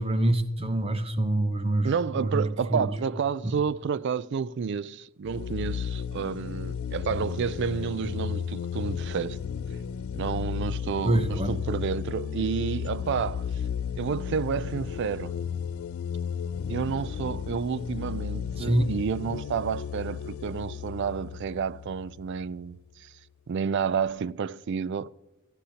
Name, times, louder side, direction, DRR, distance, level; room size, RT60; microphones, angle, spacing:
voice 1, 0.0-2.9 8.0-8.2 11.0-11.6 18.6-18.9, right 1 dB, 30° right, 0.8 m, -26 dB
voice 2, 1.8-9.4 10.1-13.5 14.0-15.4 16.7-23.1 23.5-25.1, right 6 dB, 55° right, 0.3 m, -30 dB
sound 1, 5.2-22.7, left 7 dB, 80° left, 0.4 m, -34 dB
21.5 x 14.5 x 2.8 m
head